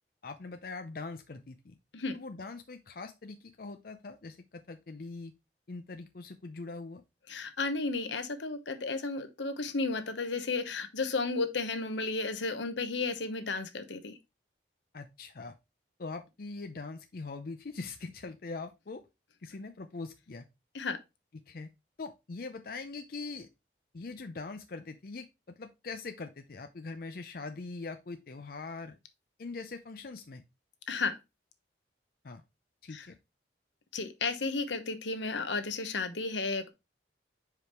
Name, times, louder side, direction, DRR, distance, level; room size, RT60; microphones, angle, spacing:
voice 1, 0.2-1.8 2.1-5.3 5.7-7.0 14.9-15.5 16.0-19.1 19.4-20.5 21.5-21.7 22.0-23.5 23.9-29.0 29.4-30.4 32.2-32.4 32.8-33.2, left 3 dB, 55° left, 0.5 m, -42 dB
voice 2, 7.3-14.1 20.7-21.0 30.9-31.1 32.9-33.0 33.9-36.7, left 3 dB, 85° left, 1.0 m, -33 dB
5.0 x 4.9 x 4.4 m
head